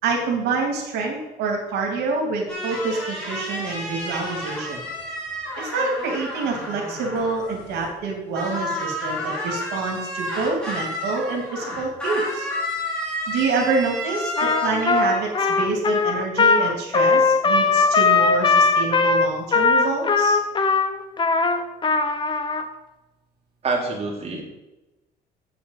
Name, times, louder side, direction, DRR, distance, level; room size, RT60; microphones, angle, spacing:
voice 1, 0.0-4.8 5.6-12.5 13.3-20.4, right 4 dB, 85° right, 0 dB, 3.0 m, -27 dB
sound 1, 2.5-8.1 8.4-15.7, left 1 dB, 5° left, 4.9 m, -31 dB
Trumpet, 14.4-22.6, left 4 dB, 30° left, 1.2 m, -19 dB
voice 2, 23.6-24.4, right 3 dB, 40° right, 0 dB, 3.5 m, -26 dB
8.5 x 7.1 x 8.1 m, 1.0 s
cardioid pair, 110°, 17 cm